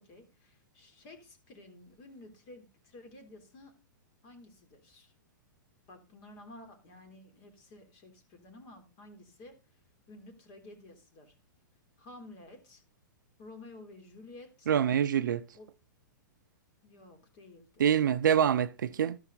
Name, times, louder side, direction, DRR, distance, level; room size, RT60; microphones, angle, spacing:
voice 1, 0.0-3.7 4.2-5.1 5.9-9.6 10.1-11.3 12.0-12.8 13.4-14.7 15.5-15.7 16.8-18.0, left 2 dB, 45° left, 3.5 m, -52 dB
voice 2, 14.7-15.4 17.8-19.2, right 9 dB, 70° right, 0.5 m, -25 dB
13.5 x 5.6 x 4.0 m
hypercardioid pair, 110°, 11 cm